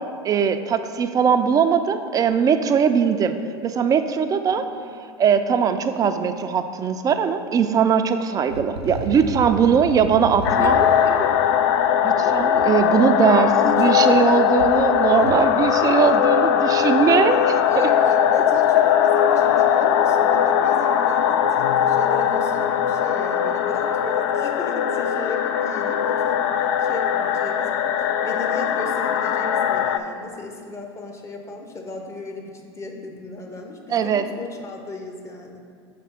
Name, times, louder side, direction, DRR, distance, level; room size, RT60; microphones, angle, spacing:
voice 1, 0.2-3.4 3.6-4.6 5.2-10.8 12.0-17.6 33.9-34.2, right 7 dB, 25° right, 9 dB, 0.4 m, -20 dB
sound 1, 8.5-12.7 13.5-14.2 14.5-15.5, right 1 dB, 90° right, 0.5 m, -34 dB
sound 2, 10.4-30.0, left 9 dB, 60° left, 0.4 m, -20 dB
voice 2, 10.5-11.3 13.6-14.3 17.7-27.7 28.0-35.6, left 3 dB, 20° left, 2 dB, 0.9 m, -35 dB
5.9 x 3.4 x 5.8 m, 2.2 s
hypercardioid pair, 90°, 14 cm